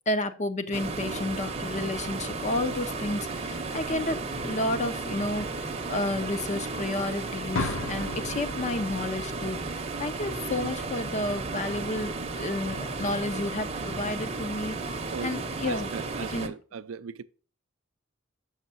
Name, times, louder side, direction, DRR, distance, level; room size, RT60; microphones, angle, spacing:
voice 1, 0.1-15.9 16.2-16.5, left 2 dB, 35° left, 0.6 m, -31 dB
sound 1, 0.7-16.5, right 3 dB, 30° right, 0.7 m, -34 dB
sound 2, 7.5-11.5, left 2 dB, 70° left, 0.7 m, -37 dB
voice 2, 15.6-17.2, right 6 dB, 75° right, 0.4 m, -38 dB
6.4 x 6.3 x 2.5 m
head